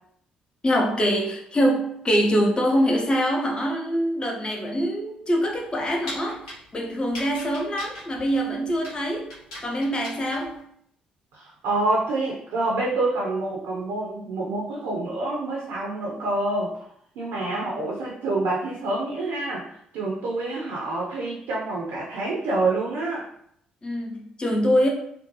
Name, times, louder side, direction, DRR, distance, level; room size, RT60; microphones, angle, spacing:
voice 1, 0.6-6.4 6.7-9.3 9.6-10.6 23.8-24.9, equal, 25° left, 0 dB, 0.6 m, -24 dB
sound 1, 5.4-10.6, left 1 dB, 75° left, 0.6 m, -41 dB
voice 2, 11.3-16.9 17.2-23.3, right 2 dB, 65° right, -3 dB, 0.5 m, -27 dB
2.6 x 2.2 x 2.7 m, 0.71 s
figure-of-eight pair, 40°, 4 cm